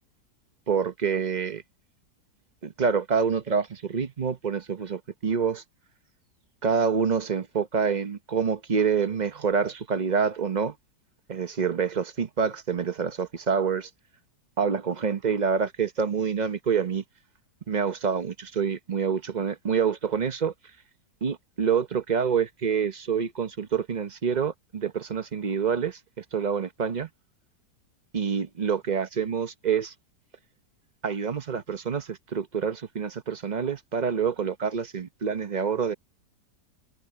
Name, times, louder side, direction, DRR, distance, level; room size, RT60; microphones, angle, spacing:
voice 1, 0.7-1.6 2.6-5.6 6.6-10.7 11.3-13.9 14.6-17.0 17.7-20.5 21.2-27.1 28.1-29.9 31.0-35.9, right 6 dB, 40° right, 0.7 m, -27 dB
omnidirectional pair, 1.9 m